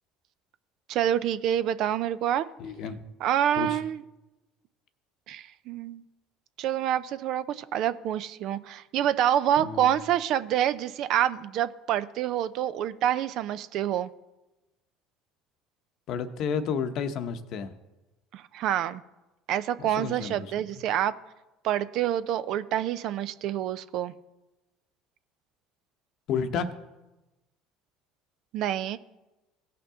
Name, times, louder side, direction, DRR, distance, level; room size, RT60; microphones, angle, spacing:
voice 1, 0.9-2.5 3.2-4.0 5.3-6.0 6.6-14.1 18.3-19.0 19.5-21.2 21.6-24.1 28.5-29.0, right 11 dB, 60° right, 14 dB, 0.5 m, -27 dB
voice 2, 2.6-3.0 3.6-3.8 9.6-10.0 16.1-17.7 19.8-20.5 26.3-26.7, left 6 dB, 60° left, 9 dB, 0.9 m, -31 dB
17.0 x 5.7 x 3.7 m, 1.0 s
hypercardioid pair, 75°, 0 cm